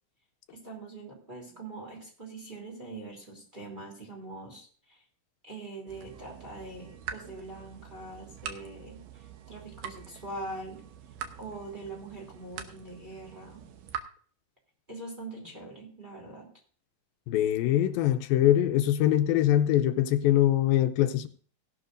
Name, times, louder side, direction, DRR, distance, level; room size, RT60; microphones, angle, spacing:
voice 1, 0.5-5.0 5.4-10.8 11.4-13.6 14.9-16.5, right 2 dB, 15° right, -3 dB, 2.8 m, -43 dB
sound 1, 5.9-14.0, right 8 dB, 75° right, 2.5 m, -44 dB
voice 2, 17.3-21.3, left 12 dB, 80° left, 8 dB, 2.4 m, -23 dB
16.5 x 11.5 x 2.6 m, 0.43 s
omnidirectional pair, 4.2 m